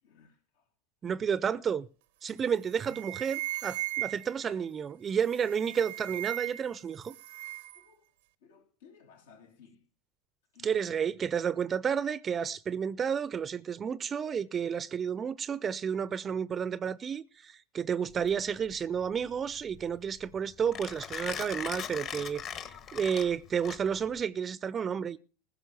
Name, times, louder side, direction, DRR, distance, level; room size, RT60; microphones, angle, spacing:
voice 1, 0.0-0.7 2.8-3.0 7.7-8.1 8.4-9.9 10.5-10.9 22.6-23.4, left 6 dB, 85° left, 3.0 m, -59 dB
voice 2, 1.0-1.9 2.2-7.2 10.6-22.4 22.9-25.2, right 7 dB, 30° right, 0.5 m, -31 dB
sound 1, 2.3-2.5 2.8-4.5 5.3-6.8 7.0-7.8, right 18 dB, 75° right, 0.8 m, -37 dB
Mechanisms, 18.1-24.2, left 8 dB, 45° left, 1.5 m, -40 dB
15.5 x 6.2 x 7.6 m
hypercardioid pair, 100°, 0 cm